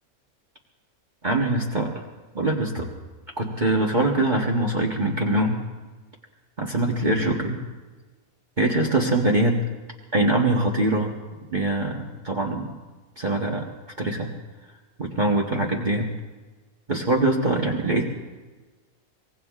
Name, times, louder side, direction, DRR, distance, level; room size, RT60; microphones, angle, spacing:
voice 1, 1.2-2.0 2.3-2.9 3.4-5.6 6.6-7.6 8.6-9.6 10.1-11.1 11.5-12.7 13.2-13.7 14.0-14.3 15.0-16.1 16.9-18.0, right 2 dB, 35° right, -1 dB, 1.3 m, -23 dB
24.0 x 20.0 x 2.4 m, 1.3 s
omnidirectional pair, 1.5 m